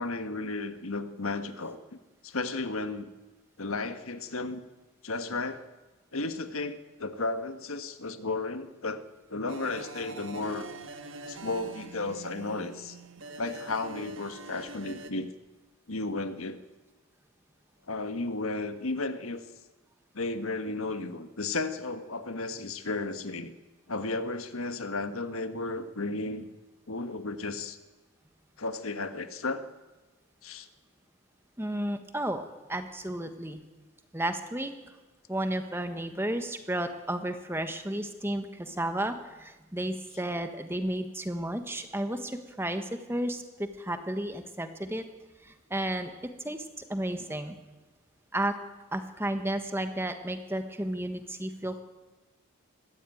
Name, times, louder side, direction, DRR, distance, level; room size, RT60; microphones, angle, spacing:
voice 1, 0.0-1.8 2.2-3.1 3.6-4.6 5.0-5.6 6.1-9.0 9.3-10.7 11.3-13.0 13.4-15.3 15.9-16.6 17.9-19.4 20.1-23.5 23.9-26.5 26.9-27.8 28.6-29.6 30.4-30.7, left 3 dB, 75° left, 9 dB, 1.4 m, -33 dB
sound 1, 9.4-15.1, right 3 dB, 60° right, 1.6 m, -44 dB
voice 2, 31.6-33.6 34.1-34.7 35.3-45.0 45.4-46.1 46.4-47.5 48.3-48.5 48.9-51.8, right 1 dB, 10° right, 7 dB, 1.3 m, -32 dB
21.0 x 15.0 x 9.2 m, 1.2 s
head